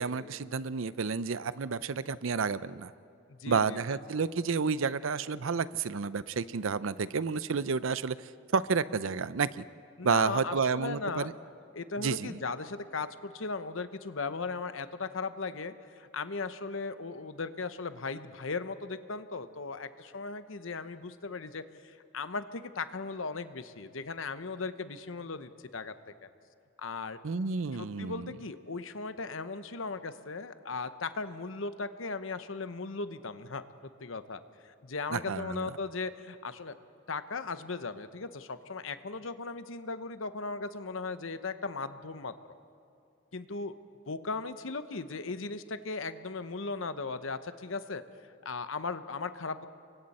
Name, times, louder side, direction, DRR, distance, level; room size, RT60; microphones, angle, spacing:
voice 1, 0.0-2.9 3.5-8.2 8.5-9.6 10.0-11.3 12.0-12.4 27.2-28.3 35.1-35.7, right 5 dB, 80° right, 16 dB, 0.6 m, -30 dB
voice 2, 3.4-3.8 10.0-11.3 11.7-25.9 26.2-26.3 26.8-27.2 27.8-33.6 34.0-36.7 37.1-42.3 43.3-43.7 44.1-48.0 48.4-49.7, left 4 dB, 75° left, 11 dB, 0.9 m, -37 dB
29.5 x 24.0 x 4.3 m, 2.5 s
head